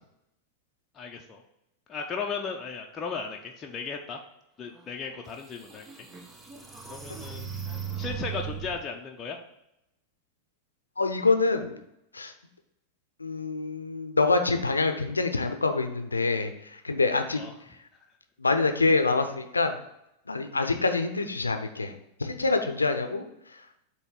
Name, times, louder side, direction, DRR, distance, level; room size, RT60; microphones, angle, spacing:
voice 1, 0.9-1.4 1.9-4.2 4.6-5.9 6.8-7.5 8.0-9.4 17.3-17.5 20.7-20.9, left 5 dB, 25° left, 1 dB, 0.7 m, -36 dB
sound 1, 5.0-5.1 5.7-8.8, right 8 dB, 20° right, 0.9 m, -37 dB
voice 2, 11.0-11.8 12.1-12.3 13.2-17.4 18.4-19.8 20.3-21.9 22.2-23.2, left 3 dB, 80° left, 7 dB, 0.7 m, -26 dB
7.9 x 3.0 x 5.8 m, 0.81 s
figure-of-eight pair, 90°, 0 cm